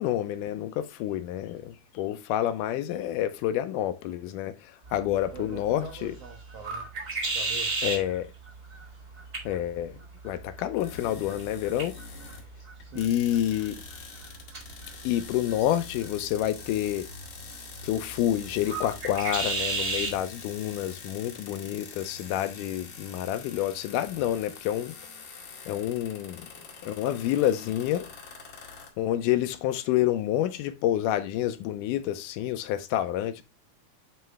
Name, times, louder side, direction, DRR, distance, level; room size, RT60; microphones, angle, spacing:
voice 1, 0.0-6.1 7.8-8.3 9.5-10.0 10.2-12.0 13.0-13.8 15.0-17.1 17.8-24.9 25.7-26.5 26.8-28.1 29.0-33.4, left 12 dB, 85° left, 2.1 m, -28 dB
sound 1, 4.8-20.2, right 3 dB, 40° right, 1.2 m, -36 dB
voice 2, 5.3-6.9 7.3-7.7 12.8-13.1, right 6 dB, 65° right, 1.7 m, -43 dB
sound 2, 10.8-12.5 12.8-28.9, left 5 dB, 65° left, 1.1 m, -45 dB
9.1 x 3.3 x 3.2 m
omnidirectional pair, 3.7 m